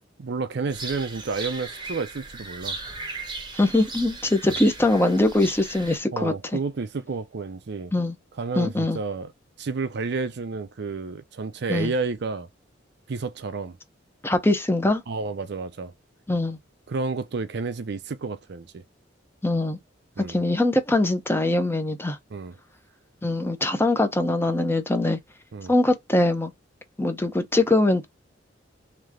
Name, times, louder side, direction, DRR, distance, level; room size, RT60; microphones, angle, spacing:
voice 1, 0.2-2.8 4.5-4.6 6.1-7.9 8.4-9.3 9.6-12.5 13.1-13.8 15.1-15.9 16.9-18.8 20.2-20.4 22.3-22.6 25.5-25.7, right 4 dB, 65° right, 0.5 m, -30 dB
sound 1, 0.7-6.0, right 3 dB, 25° right, 0.9 m, -37 dB
voice 2, 3.5-6.3 7.9-8.1 8.6-9.0 11.7-11.9 14.2-15.0 16.3-16.6 19.4-19.8 20.2-22.2 23.2-25.2 25.7-26.5 27.0-28.0, left 2 dB, 15° left, 0.8 m, -22 dB
3.3 x 3.2 x 3.6 m
head